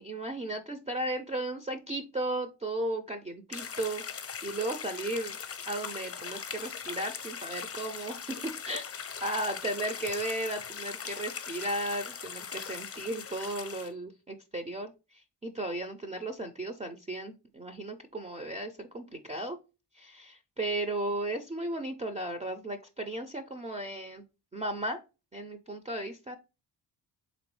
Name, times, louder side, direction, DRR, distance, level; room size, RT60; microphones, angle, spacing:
voice 1, 0.0-5.4 5.7-19.6 19.9-24.2 24.5-25.0 25.3-26.4, right 1 dB, 20° right, 7 dB, 0.4 m, -35 dB
sound 1, 3.5-13.9, left 7 dB, 35° left, 0.6 m, -40 dB
3.4 x 3.0 x 3.1 m, 0.28 s
cardioid pair, 80°, 42 cm